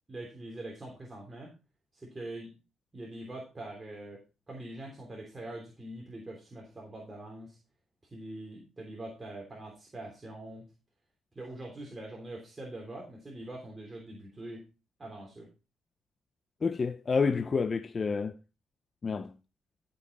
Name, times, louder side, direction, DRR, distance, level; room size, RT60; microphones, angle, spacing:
voice 1, 0.1-1.5 1.9-2.6 2.9-7.6 8.1-10.7 11.3-14.6 15.0-15.5, right 1 dB, 20° right, 3.3 m, -43 dB
voice 2, 16.6-18.4 19.0-19.3, left 5 dB, 35° left, 0.6 m, -29 dB
14.0 x 5.6 x 4.1 m
cardioid pair, 90°, 0 cm